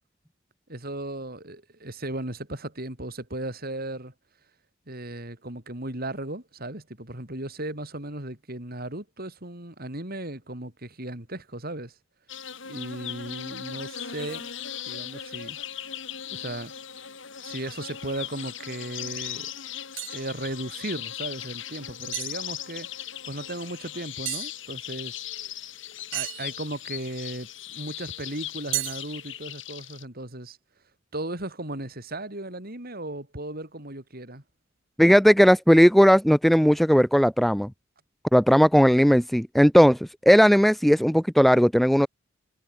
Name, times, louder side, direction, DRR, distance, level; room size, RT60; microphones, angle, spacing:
voice 1, 0.7-4.1 4.9-11.9 12.6-14.5 14.8-15.9 16.3-16.7 17.4-19.5 20.1-25.2 26.1-30.6 31.1-34.4, right 1 dB, 45° right, 4.7 m, -36 dB
sound 1, 12.3-30.0, left 10 dB, 65° left, 5.2 m, -38 dB
sound 2, 18.4-18.5 19.2-19.4 20.0-20.3 22.1-22.4 24.3-24.5 26.1-26.9 28.7-29.2, right 16 dB, 65° right, 0.9 m, -33 dB
voice 2, 35.0-37.7 38.3-42.1, equal, ahead, 0.4 m, -17 dB
head